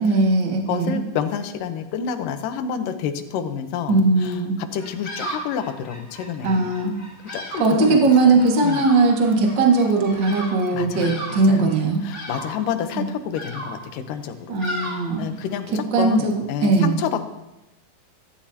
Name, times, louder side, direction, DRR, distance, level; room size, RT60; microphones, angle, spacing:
voice 1, 0.0-1.0 3.9-4.6 6.4-6.9 7.6-12.0 13.0-13.1 14.5-15.3 15.9-16.3 16.6-17.0, right 3 dB, 40° right, -1 dB, 2.2 m, -19 dB
voice 2, 0.7-6.7 7.3-8.0 8.2-8.4 8.6-8.8 10.7-11.7 12.0-14.6 15.2-17.3, left 8 dB, 75° left, 7 dB, 2.6 m, -29 dB
Bird vocalization bird call bird song, 4.7-15.7, right 1 dB, 10° left, 4.7 m, -36 dB
24.5 x 13.5 x 2.9 m, 0.92 s
omnidirectional pair, 4.0 m